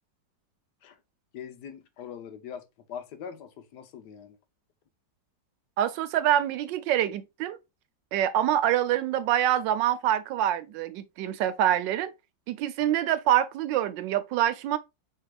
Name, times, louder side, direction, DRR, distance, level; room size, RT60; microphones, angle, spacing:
voice 1, 1.3-4.4, left 8 dB, 70° left, 1.2 m, -42 dB
voice 2, 5.8-7.6 8.1-12.1 12.5-14.8, right 11 dB, 80° right, 1.2 m, -25 dB
4.9 x 4.6 x 2.3 m
omnidirectional pair, 2.0 m